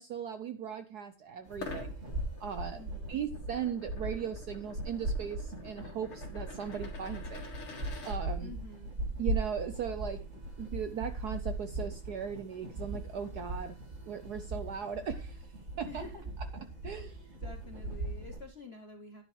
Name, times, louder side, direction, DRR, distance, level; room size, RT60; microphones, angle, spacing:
voice 1, 0.0-1.9 2.4-2.8 3.1-7.4 8.0-8.5 9.2-10.2 10.6-13.8 14.1-15.5 15.8-16.0 16.8-17.1, right 8 dB, 65° right, 1.0 m, -38 dB
sound 1, 1.5-8.2, left 4 dB, 80° left, 3.1 m, -48 dB
sound 2, 1.5-18.4, right 1 dB, 35° right, 2.4 m, -39 dB
voice 2, 2.7-3.2 8.4-8.9 15.8-16.3 16.8-17.1 17.4-19.2, left 3 dB, 50° left, 0.7 m, -49 dB
10.5 x 10.0 x 3.2 m
omnidirectional pair, 2.4 m